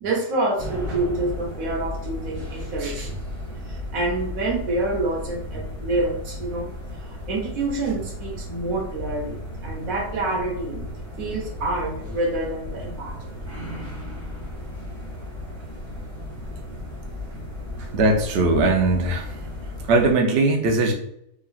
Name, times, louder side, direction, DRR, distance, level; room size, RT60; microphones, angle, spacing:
voice 1, 0.0-3.2 3.7-6.7 7.0-10.8 11.2-13.3 15.9-16.0 16.7-16.8 17.3-17.4 17.8-17.9, right 2 dB, 85° right, -2 dB, 1.3 m, -27 dB
sound 1, 0.6-20.1, left 1 dB, 35° right, 1.4 m, -35 dB
voice 2, 17.9-19.4 19.9-20.9, right 2 dB, 65° right, 2 dB, 0.7 m, -19 dB
3.0 x 2.4 x 2.3 m, 0.71 s
omnidirectional pair, 1.4 m